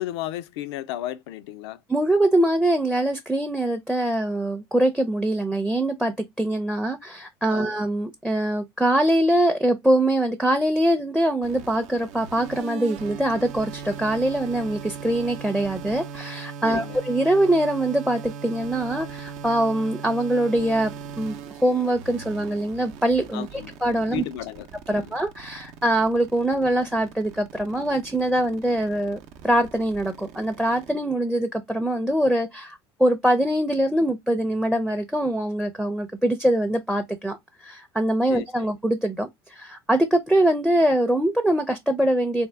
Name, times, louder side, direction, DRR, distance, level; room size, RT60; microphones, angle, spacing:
voice 1, 0.0-1.8 7.5-7.8 16.6-17.0 23.3-23.7 24.1-25.2 38.3-38.7, left 13 dB, 80° left, 0.4 m, -34 dB
voice 2, 1.9-20.9 21.2-23.5 23.8-24.2 24.9-37.4 37.6-42.5, right 1 dB, 5° right, 0.5 m, -23 dB
sound 1, 11.4-30.9, right 7 dB, 65° right, 0.6 m, -39 dB
3.5 x 2.3 x 3.3 m
hypercardioid pair, 85°, 13 cm